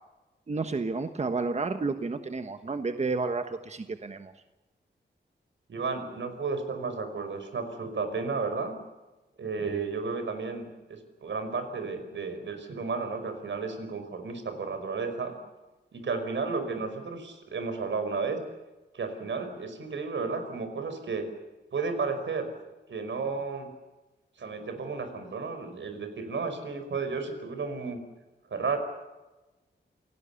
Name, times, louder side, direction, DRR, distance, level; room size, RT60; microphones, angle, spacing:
voice 1, 0.5-4.3, right 3 dB, 35° right, 8 dB, 1.3 m, -31 dB
voice 2, 5.7-8.8 9.4-15.3 15.9-18.4 18.9-21.3 21.7-22.5 22.9-23.7 24.4-28.0 28.5-28.8, right 4 dB, 85° right, 7 dB, 5.2 m, -33 dB
28.5 x 18.0 x 7.1 m, 1.1 s
wide cardioid pair, 150°, 19 cm